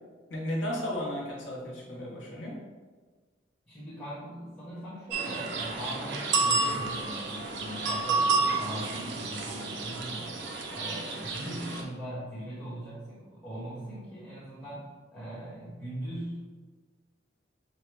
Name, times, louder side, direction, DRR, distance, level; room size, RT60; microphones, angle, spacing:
voice 1, 0.3-2.6, equal, 80° left, -2 dB, 1.2 m, -34 dB
voice 2, 3.7-16.4, equal, ahead, -10 dB, 1.2 m, -40 dB
sound 1, 5.1-11.8, right 3 dB, 65° right, 0.6 m, -30 dB
6.6 x 2.2 x 3.4 m, 1.4 s
head